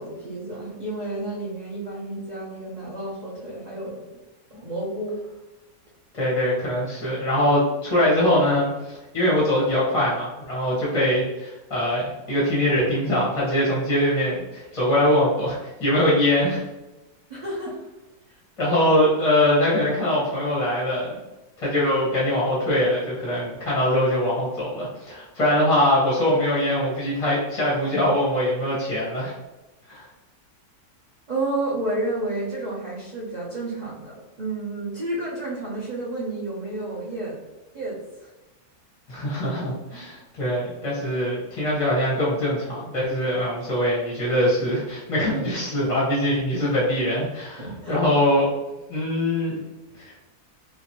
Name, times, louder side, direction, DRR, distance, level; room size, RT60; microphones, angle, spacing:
voice 1, 0.0-4.0 4.6-5.2 17.3-17.8 18.3-18.4 31.3-37.4 37.7-38.3 45.2-45.5 45.8-45.9 47.6-48.0, right 2 dB, 60° right, -7 dB, 0.4 m, -31 dB
voice 2, 6.1-16.6 18.6-21.2 21.6-29.3 29.9-30.1 39.1-48.5 48.9-49.6 50.0-50.1, left 1 dB, 25° left, -7 dB, 0.8 m, -22 dB
3.0 x 2.7 x 2.8 m, 1.0 s
omnidirectional pair, 1.8 m